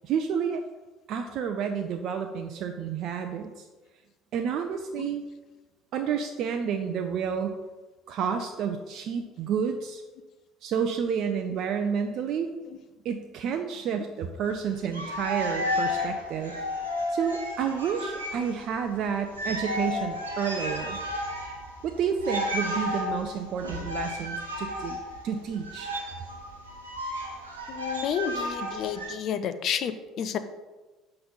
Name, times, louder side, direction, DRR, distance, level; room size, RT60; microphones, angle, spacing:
voice 1, 0.0-0.6 1.1-3.7 4.3-5.2 5.9-7.6 8.1-10.0 10.6-12.5 13.0-16.5 17.1-21.0 21.8-25.0 25.2-25.9, right 7 dB, 55° right, 6 dB, 0.4 m, -30 dB
sound 1, 14.8-18.6 18.9-19.0 19.3-29.1, left 1 dB, 85° right, 0.9 m, -33 dB
voice 2, 27.7-30.4, left 8 dB, 50° left, 10 dB, 0.5 m, -31 dB
5.9 x 3.8 x 5.4 m, 1.2 s
figure-of-eight pair, 55°, 0 cm